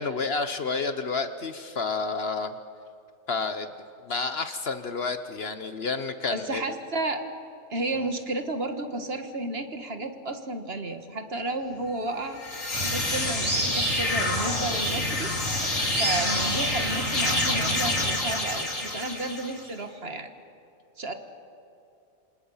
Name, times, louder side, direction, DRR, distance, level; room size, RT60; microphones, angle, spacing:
voice 1, 0.0-2.6 3.3-3.7 4.1-6.6, left 4 dB, 50° left, 10 dB, 1.0 m, -30 dB
voice 2, 6.3-7.2 7.7-12.4 12.8-15.3 15.9-20.3 21.0-21.1, right 2 dB, 45° right, 7 dB, 1.7 m, -32 dB
sound 1, 12.3-19.7, left 2 dB, 65° left, 3.4 m, -28 dB
sound 2, 12.7-18.1, right 1 dB, 70° right, 4.8 m, -31 dB
27.0 x 27.0 x 5.6 m, 2.7 s
omnidirectional pair, 1.4 m